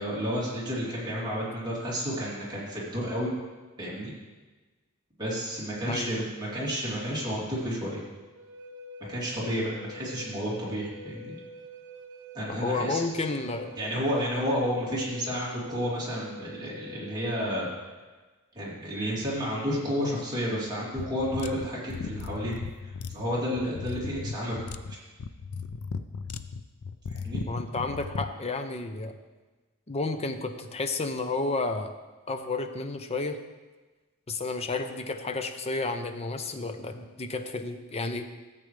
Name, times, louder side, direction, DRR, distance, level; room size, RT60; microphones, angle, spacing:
voice 1, 0.0-3.3 3.8-4.1 5.2-8.0 9.1-11.3 12.3-13.0 13.8-17.7 18.5-22.6 22.8-24.6 24.9-25.0 27.1-27.4, equal, 20° right, -7 dB, 3.0 m, -31 dB
voice 2, 5.9-6.2 12.6-13.8 27.5-29.1 29.9-31.9 32.3-33.4 34.3-38.3, left 3 dB, 30° left, 7 dB, 0.7 m, -31 dB
Wind instrument woodwind instrument, 8.4-17.6, equal, 60° right, 1.0 m, -46 dB
sound 1, 21.0-28.3, left 5 dB, 90° left, 0.5 m, -36 dB
14.0 x 8.4 x 3.3 m, 1.3 s
head